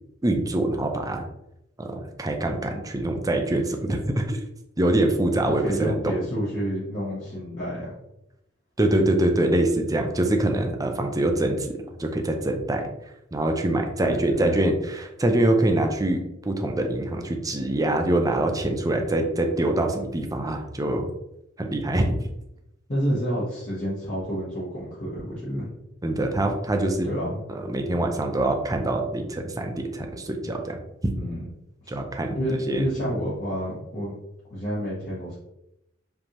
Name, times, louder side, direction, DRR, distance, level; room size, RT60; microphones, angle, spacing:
voice 1, 0.2-1.3 1.8-4.4 4.8-6.1 8.8-11.7 12.0-12.9 13.3-21.1 21.6-22.3 26.0-27.1 27.5-30.8 31.9-32.8, right 1 dB, 20° right, 4 dB, 0.6 m, -24 dB
voice 2, 5.4-7.9 14.0-14.6 22.9-25.7 27.0-27.4 31.1-31.5 31.8-31.9 32.3-34.1 34.5-35.3, equal, 40° left, -9 dB, 1.3 m, -29 dB
5.2 x 3.4 x 3.0 m, 0.85 s
head